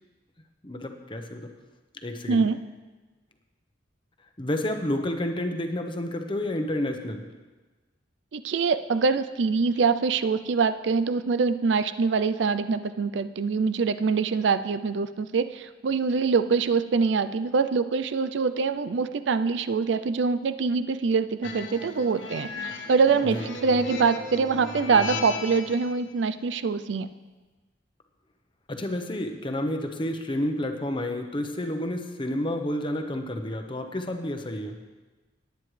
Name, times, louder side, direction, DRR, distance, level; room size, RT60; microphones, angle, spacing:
voice 1, 0.6-1.5 1.9-2.5 4.4-7.2 23.3-23.4 28.7-34.8, left 1 dB, 25° left, 5 dB, 0.9 m, -30 dB
voice 2, 2.3-2.6 8.3-22.5 22.9-27.1, right 5 dB, 70° right, 12 dB, 0.4 m, -24 dB
sound 1, 21.4-25.9, left 2 dB, 80° left, 1.0 m, -35 dB
18.5 x 9.2 x 3.3 m, 1.3 s
head